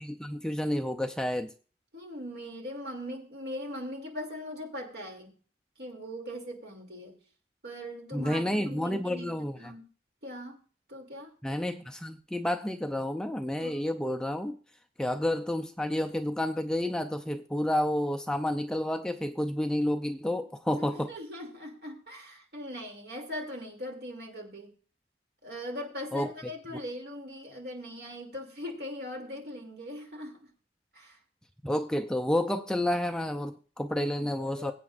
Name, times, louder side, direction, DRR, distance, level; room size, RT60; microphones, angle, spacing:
voice 1, 0.0-1.5 8.1-9.7 11.4-14.6 15.0-21.1 26.1-26.3 31.6-34.7, left 1 dB, 5° left, 0.4 m, -30 dB
voice 2, 1.9-5.3 5.8-7.2 7.6-9.3 9.6-9.8 10.2-10.6 10.9-11.3 13.6-13.8 20.8-24.7 25.4-30.5 30.9-31.2 34.2-34.7, equal, 60° right, 2.7 m, -40 dB
21.5 x 8.4 x 2.5 m
head